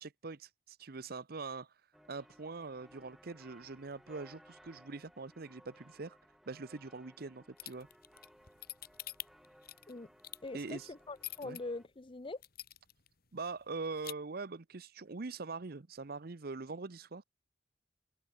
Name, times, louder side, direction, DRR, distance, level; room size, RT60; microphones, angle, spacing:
voice 1, 0.0-1.7 2.1-6.2 6.5-7.9 10.5-10.9 11.4-11.6 13.3-17.2, right 4 dB, 55° right, 0.8 m, -43 dB
sound 1, 1.9-11.9, equal, ahead, 6.6 m, -61 dB
sound 2, 7.6-11.6 12.0-12.1 12.4-13.1 13.4-13.5 13.8-14.1, left 13 dB, 55° left, 3.1 m, -45 dB
voice 2, 10.4-12.4, left 2 dB, 30° left, 0.7 m, -43 dB
head